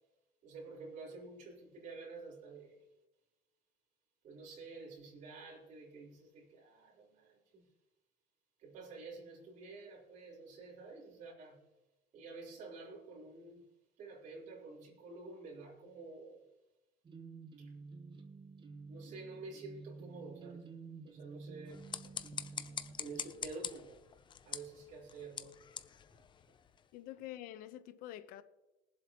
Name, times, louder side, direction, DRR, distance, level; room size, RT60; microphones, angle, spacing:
voice 1, 0.4-2.8 4.2-7.7 8.6-11.6 12.1-13.7 14.0-16.4 17.6-17.7 18.9-20.7 21.0-21.9 23.0-24.0 24.4-25.6 26.1-26.2, right 3 dB, 60° right, 3.8 m, -50 dB
sound 1, 17.0-23.7, right 4 dB, 35° right, 1.3 m, -51 dB
sound 2, 21.6-26.9, left 7 dB, 30° left, 0.6 m, -45 dB
voice 2, 26.9-28.4, left 13 dB, 75° left, 0.9 m, -47 dB
21.5 x 7.6 x 3.0 m
cardioid pair, 110°, 15 cm